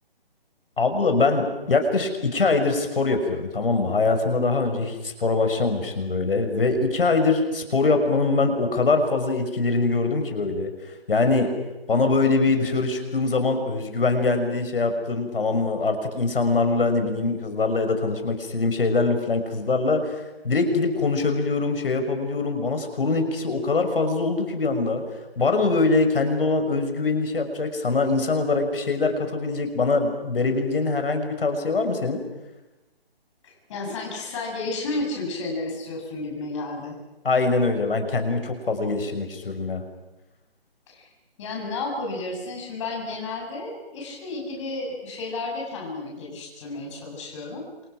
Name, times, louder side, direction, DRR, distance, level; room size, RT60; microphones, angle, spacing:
voice 1, 0.8-11.5 11.9-25.0 25.4-32.2 37.2-39.8, left 3 dB, 65° left, 7 dB, 5.8 m, -23 dB
voice 2, 33.4-37.0 40.9-41.1 41.4-47.6, left 2 dB, 30° left, 0 dB, 7.9 m, -32 dB
29.5 x 28.0 x 6.1 m, 1.0 s
hypercardioid pair, 160°, 30 cm